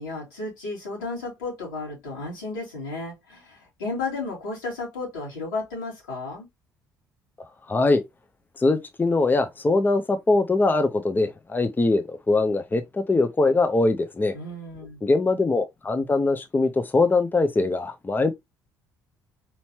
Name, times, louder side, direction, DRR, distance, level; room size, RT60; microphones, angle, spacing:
voice 1, 0.0-6.5 14.3-15.0, left 3 dB, 80° left, 2.9 m, -33 dB
voice 2, 7.7-8.0 8.6-14.3 15.0-18.3, left 3 dB, 20° left, 0.7 m, -22 dB
4.3 x 4.3 x 2.9 m
figure-of-eight pair, 50°, 10 cm